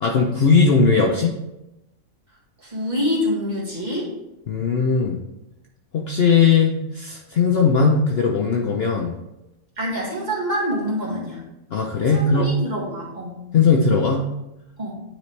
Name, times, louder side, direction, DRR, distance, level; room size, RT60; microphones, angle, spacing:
voice 1, 0.0-1.3 4.5-5.2 5.9-9.1 11.7-12.6 13.5-14.3, left 5 dB, 55° left, 1 dB, 0.7 m, -18 dB
voice 2, 2.6-4.1 9.8-11.4 12.1-13.4 14.8-14.9, equal, 30° right, -5 dB, 2.0 m, -26 dB
9.5 x 4.2 x 3.2 m, 0.93 s
omnidirectional pair, 1.5 m